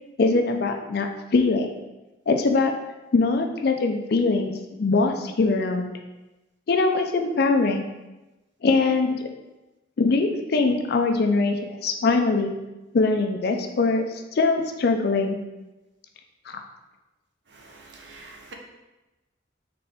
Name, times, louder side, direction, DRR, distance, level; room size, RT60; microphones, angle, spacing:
voice 1, 0.2-1.7 2.3-2.7 3.1-5.9 6.7-7.8 8.6-9.2 10.0-12.5 12.9-14.1 14.3-15.4 16.5-16.6, left 3 dB, 55° left, 5 dB, 0.4 m, -22 dB
voice 2, 17.5-18.5, right 3 dB, 60° right, 1 dB, 0.7 m, -46 dB
3.9 x 3.3 x 3.4 m, 1.0 s
head